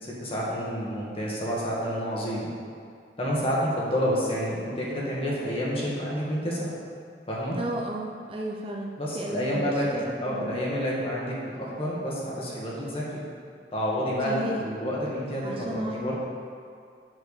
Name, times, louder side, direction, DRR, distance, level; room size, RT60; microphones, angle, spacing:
voice 1, 0.0-2.5 3.2-6.8 7.3-7.6 9.0-13.2 13.7-16.2, equal, 30° left, -5 dB, 1.8 m, -29 dB
voice 2, 7.5-9.7 10.3-10.5 14.2-14.6 15.4-16.1, right 1 dB, 30° right, -1 dB, 0.6 m, -33 dB
8.0 x 4.7 x 6.6 m, 2.3 s
head